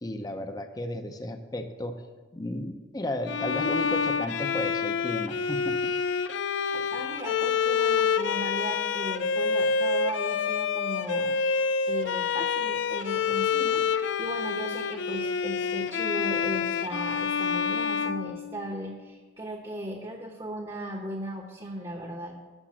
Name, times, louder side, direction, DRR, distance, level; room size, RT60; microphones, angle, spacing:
voice 1, 0.0-2.0 2.3-5.9, left 1 dB, 20° left, 6 dB, 0.6 m, -33 dB
Bowed string instrument, 3.3-19.0, left 6 dB, 80° left, 0.4 m, -27 dB
voice 2, 6.7-22.3, right 1 dB, 25° right, 1 dB, 0.9 m, -37 dB
10.0 x 6.7 x 6.1 m, 1.3 s
head